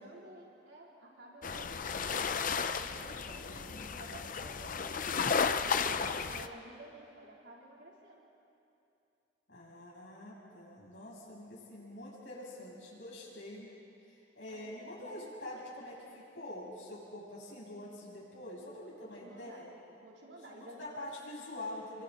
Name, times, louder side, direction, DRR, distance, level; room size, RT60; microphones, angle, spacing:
voice 1, 0.0-2.2 2.8-8.3 14.5-14.9 19.0-19.7 20.0-20.8, right 1 dB, 70° right, -4 dB, 4.1 m, -53 dB
sound 1, 1.4-6.5, left 5 dB, 45° left, 0.7 m, -33 dB
voice 2, 3.2-4.1 9.5-13.7 14.0-19.7 20.5-22.0, left 1 dB, 75° left, -5 dB, 7.4 m, -46 dB
30.0 x 24.5 x 4.4 m, 2.7 s
head